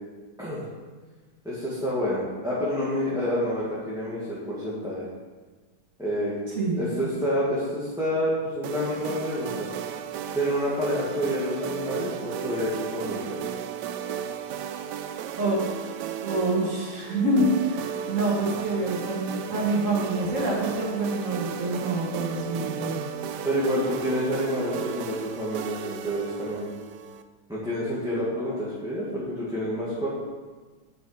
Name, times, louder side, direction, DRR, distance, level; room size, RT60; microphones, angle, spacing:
voice 1, 0.4-0.7 1.4-5.1 6.0-6.3 6.8-9.7 10.3-13.4 23.4-26.7 27.5-30.1, equal, ahead, -9 dB, 1.9 m, -28 dB
voice 2, 6.6-7.1 15.4-15.6 16.2-23.0, right 1 dB, 45° right, -4 dB, 2.4 m, -26 dB
sound 1, 8.6-27.2, right 9 dB, 75° right, 1.2 m, -35 dB
9.3 x 6.4 x 5.1 m, 1.4 s
omnidirectional pair, 1.9 m